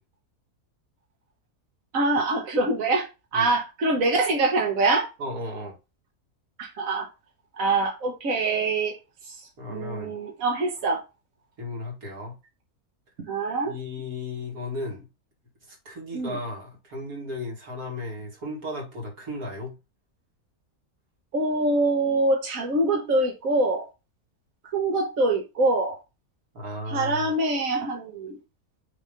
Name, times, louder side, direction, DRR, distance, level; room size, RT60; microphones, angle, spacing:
voice 1, 1.9-5.1 6.6-7.1 7.6-9.0 9.2-11.0 13.2-13.7 16.1-16.4 21.3-23.9 24.7-26.0 26.9-28.4, right 2 dB, 65° right, 1.6 m, -24 dB
voice 2, 5.2-5.8 9.6-10.1 11.6-12.4 13.6-15.1 15.7-19.8 26.5-27.3, left 2 dB, 80° right, 2.5 m, -35 dB
6.5 x 3.0 x 5.2 m
omnidirectional pair, 1.5 m